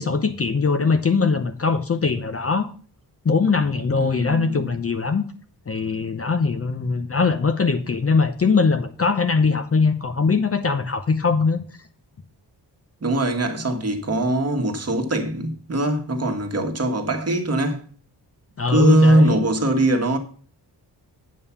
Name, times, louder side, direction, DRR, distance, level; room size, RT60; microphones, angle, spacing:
voice 1, 0.0-2.7 3.2-5.2 5.7-11.6 18.6-19.4, left 4 dB, 35° left, 0.8 m, -21 dB
voice 2, 4.0-4.7 13.0-17.8 18.7-20.2, right 1 dB, 35° right, 1.7 m, -21 dB
8.7 x 5.4 x 7.0 m
wide cardioid pair, 135°, 42 cm